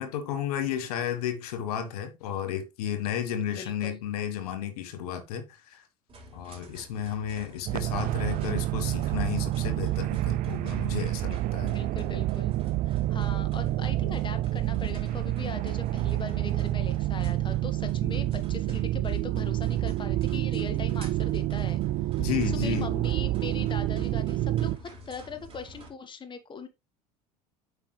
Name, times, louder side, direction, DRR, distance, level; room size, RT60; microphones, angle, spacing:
voice 1, 0.0-5.8 6.3-11.8 22.2-22.9, left 9 dB, 70° left, 1.4 m, -32 dB
voice 2, 3.5-4.0 11.7-12.5 12.9-21.8 22.1-26.7, left 5 dB, 25° left, 1.4 m, -40 dB
sound 1, 6.1-25.9, equal, 25° right, 3.2 m, -50 dB
sound 2, 7.7-24.8, right 15 dB, 45° right, 0.4 m, -28 dB
8.1 x 5.5 x 3.2 m
hypercardioid pair, 75°, 20 cm